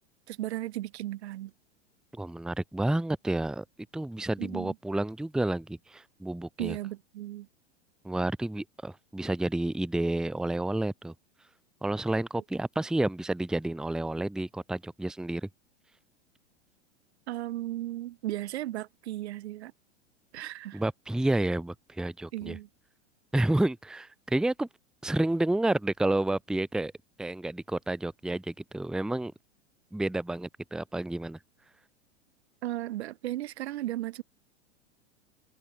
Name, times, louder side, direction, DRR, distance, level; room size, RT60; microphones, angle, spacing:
voice 1, 0.3-1.5 4.4-4.7 6.6-7.5 17.3-19.7 20.3-20.8 22.3-22.7 32.6-34.2, right 14 dB, 65° right, 1.3 m, -35 dB
voice 2, 2.1-3.6 3.9-6.8 8.0-11.1 11.8-15.5 20.7-22.6 23.3-24.7 25.0-26.9 27.2-29.3 29.9-31.4, right 1 dB, ahead, 0.8 m, -30 dB
hypercardioid pair, 95°, 36 cm